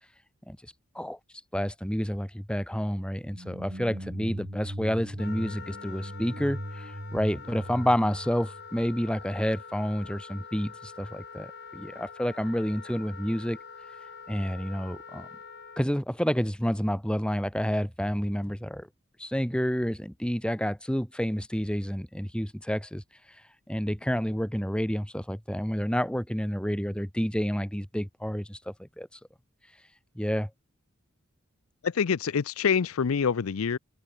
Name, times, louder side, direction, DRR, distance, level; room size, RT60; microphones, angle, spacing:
voice 1, 1.5-13.6 14.3-15.3 15.8-18.9 19.2-23.0 23.7-29.1 30.2-30.5, equal, 5° left, 1.8 m, -29 dB
sound 1, 3.3-9.2, equal, 40° right, 5.6 m, -39 dB
Wind instrument woodwind instrument, 5.2-15.9, left 5 dB, 50° left, 6.7 m, -45 dB
voice 2, 31.8-33.8, left 6 dB, 85° left, 0.5 m, -26 dB
open air
head